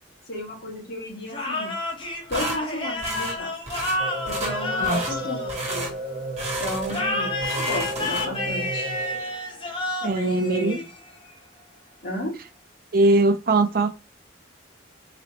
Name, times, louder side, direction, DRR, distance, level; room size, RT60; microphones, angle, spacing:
voice 1, 0.3-1.7 2.3-3.5 4.3-5.9 6.6-8.9 10.0-10.9 12.0-12.4, left 1 dB, 55° left, 2.1 m, -33 dB
sound 1, 1.3-6.1 6.9-11.3, left 2 dB, 25° left, 1.1 m, -30 dB
sound 2, 2.3-2.6 3.0-3.4 3.7-4.0 4.3-4.6 4.8-5.2 5.5-5.9 6.4-7.1 7.3-8.5, right 2 dB, 35° right, 1.6 m, -32 dB
sound 3, 4.0-9.4, right 1 dB, 85° left, 2.0 m, -34 dB
voice 2, 10.0-10.8 12.9-13.9, right 2 dB, 50° right, 0.5 m, -21 dB
4.0 x 3.1 x 3.0 m
head